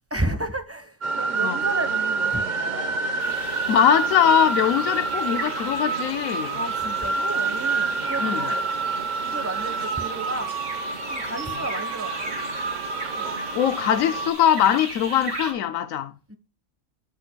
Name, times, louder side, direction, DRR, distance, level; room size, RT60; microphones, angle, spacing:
voice 1, 0.1-2.8 6.5-8.7 9.2-10.5 11.1-12.4 13.2-13.3 16.3-16.4, right 2 dB, 10° right, 0.9 m, -32 dB
sound 1, 1.0-14.3, right 4 dB, 40° right, 1.0 m, -27 dB
sound 2, 3.2-15.5, right 2 dB, 60° right, 2.5 m, -37 dB
voice 2, 3.7-6.6 8.2-8.5 11.5-11.6 13.5-16.1, left 10 dB, 75° left, 1.0 m, -21 dB
15.0 x 5.3 x 2.2 m
omnidirectional pair, 1.4 m